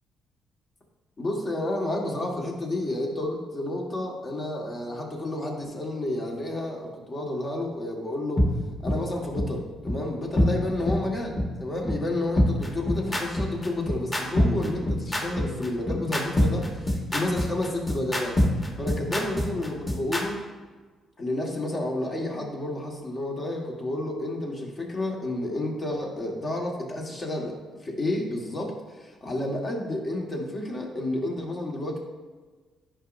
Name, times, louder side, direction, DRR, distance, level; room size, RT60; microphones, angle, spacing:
voice 1, 1.2-8.4 8.8-18.4 18.8-20.4 21.2-27.5 27.8-28.7 29.0-32.0, left 1 dB, 40° left, -1 dB, 1.6 m, -30 dB
sound 1, 8.4-8.5 8.9-9.0 9.4-9.5 9.9-10.0 10.4-10.5 10.9-11.0 11.4-11.5 11.9-12.0 12.4-20.2, equal, 20° left, 1.5 m, -23 dB
11.0 x 5.1 x 2.6 m, 1.4 s
cardioid pair, 90°, 0 cm